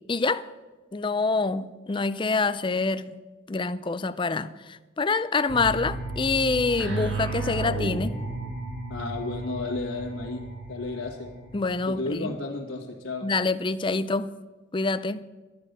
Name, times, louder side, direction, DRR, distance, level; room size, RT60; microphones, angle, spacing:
voice 1, 0.1-0.5 0.9-3.1 3.5-8.2 11.5-12.3 13.2-14.3 14.7-15.2, left 3 dB, 25° left, 13 dB, 0.4 m, -26 dB
sound 1, 5.5-12.2, right 2 dB, 65° right, 2.6 m, -33 dB
voice 2, 8.9-10.4 10.7-11.3 11.9-13.3, left 2 dB, 80° left, -5 dB, 1.9 m, -32 dB
13.0 x 9.9 x 6.8 m, 1.2 s
head